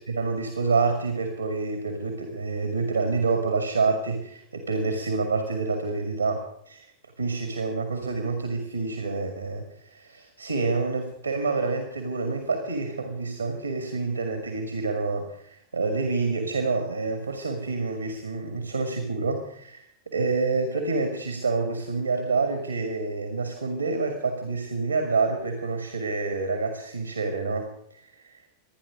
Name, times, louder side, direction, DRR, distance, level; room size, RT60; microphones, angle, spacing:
voice 1, 0.1-6.9 7.2-28.4, right 3 dB, 80° right, 5 dB, 2.1 m, -28 dB
27.0 x 10.0 x 5.1 m, 0.69 s
figure-of-eight pair, 90°, 0 cm